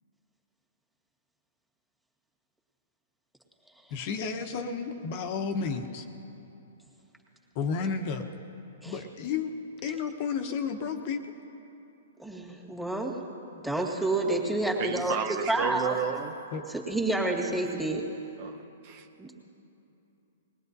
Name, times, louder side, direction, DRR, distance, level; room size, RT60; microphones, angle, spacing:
voice 1, 3.9-6.0 7.5-8.2 8.8-9.5 9.8-11.2 16.5-16.6, left 5 dB, 45° left, 5 dB, 1.1 m, -32 dB
voice 2, 12.2-13.2 13.6-15.2 15.5-16.0 16.7-18.0 19.2-19.3, right 2 dB, 5° right, -2 dB, 2.2 m, -29 dB
voice 3, 14.8-16.4 18.4-19.1, right 7 dB, 45° right, 5 dB, 1.0 m, -32 dB
20.5 x 20.0 x 2.7 m, 2.9 s
hypercardioid pair, 120°, 0 cm